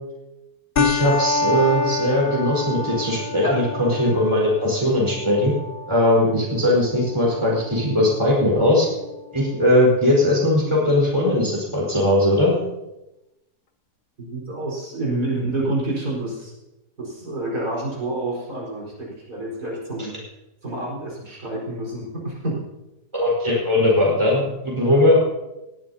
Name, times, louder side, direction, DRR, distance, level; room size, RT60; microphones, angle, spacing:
sound 1, 0.8-9.7, left 4 dB, 45° left, 0.7 m, -29 dB
voice 1, 0.8-5.5 5.9-8.9 9.3-12.5 23.1-25.3, left 1 dB, 15° right, -4 dB, 4.8 m, -19 dB
voice 2, 14.2-16.5 17.0-20.1 20.6-22.6, right 2 dB, 65° right, -5 dB, 5.1 m, -28 dB
19.0 x 14.0 x 2.8 m, 0.97 s
omnidirectional pair, 1.8 m